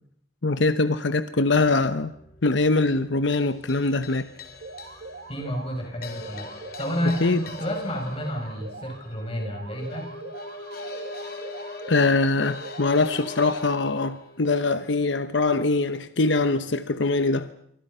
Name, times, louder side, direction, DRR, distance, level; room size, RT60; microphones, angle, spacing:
voice 1, 0.4-2.1 2.4-4.3 7.2-7.4 11.9-17.5, left 3 dB, 75° left, 1.0 m, -23 dB
sound 1, 1.6-14.9, left 2 dB, 55° left, 3.3 m, -42 dB
sound 2, 4.6-5.8 6.2-9.0 9.4-12.2 12.6-14.2, right 3 dB, 70° right, 2.1 m, -42 dB
voice 2, 5.3-10.1, equal, 30° left, 7.5 m, -30 dB
28.5 x 24.5 x 5.6 m
head